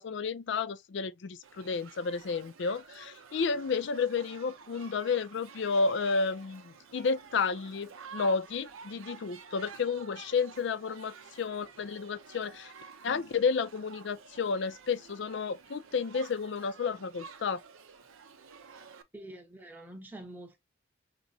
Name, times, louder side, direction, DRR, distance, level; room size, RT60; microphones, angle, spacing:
voice 1, 0.0-12.7 13.0-17.6, left 5 dB, 55° left, 0.4 m, -31 dB
Shout / Human group actions, 1.4-19.0, right 6 dB, 75° right, 0.7 m, -51 dB
voice 2, 19.1-20.6, right 1 dB, 10° right, 0.8 m, -46 dB
5.9 x 2.1 x 2.6 m
head